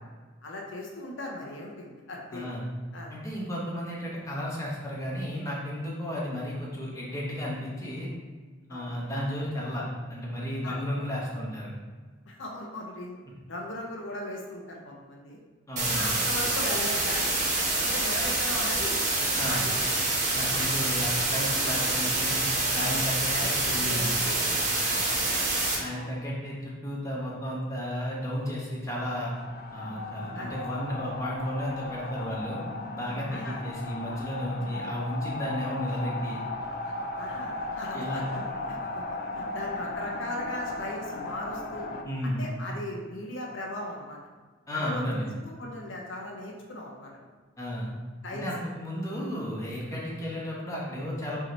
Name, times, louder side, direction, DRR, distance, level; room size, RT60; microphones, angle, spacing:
voice 1, 0.4-2.5 2.9-3.1 8.7-8.9 10.6-10.8 12.3-13.2 13.5-15.4 15.9-17.4 17.8-19.0 19.4-19.6 20.4-20.5 21.5-21.8 22.8-23.0 23.3-24.9 25.2-25.4 25.9-26.2 30.3-30.5 33.3-33.6 37.2-38.4 38.7-39.0 39.3-41.9 42.2-44.2 44.7-47.3 48.2-48.5, left 1 dB, 70° left, -1 dB, 0.8 m, -38 dB
voice 2, 2.3-2.6 3.1-8.1 8.7-9.8 10.1-11.7 15.7-16.1 19.4-19.6 20.3-22.4 22.7-24.1 25.8-29.3 29.7-32.6 32.9-36.4 37.9-38.2 42.0-42.4 44.7-45.2 47.6-47.9 48.3-51.4, equal, 15° left, -5 dB, 1.1 m, -33 dB
sound 1, 15.8-25.8, right 2 dB, 40° right, 1.1 m, -27 dB
sound 2, 29.0-42.0, left 2 dB, 50° left, 0.4 m, -36 dB
5.5 x 3.0 x 3.1 m, 1.4 s
head